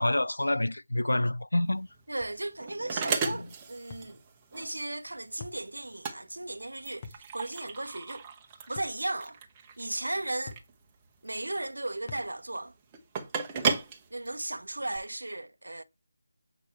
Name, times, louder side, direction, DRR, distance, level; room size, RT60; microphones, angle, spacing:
voice 1, 0.0-1.9 3.2-3.5, left 1 dB, 75° left, 0.4 m, -28 dB
sound 1, 1.7-15.0, right 5 dB, 15° right, 1.1 m, -36 dB
voice 2, 2.1-4.2 4.5-8.2 8.7-9.4 9.8-10.6 11.2-12.7 14.1-15.8, right 2 dB, 75° right, 0.9 m, -36 dB
sound 2, 2.2-2.4 3.9-4.1 5.4-5.7 7.0-7.3 8.8-9.0 10.5-10.7 12.1-12.3 13.7-13.9, left 5 dB, 30° left, 1.0 m, -44 dB
8.4 x 4.9 x 4.6 m
figure-of-eight pair, 160°, 0 cm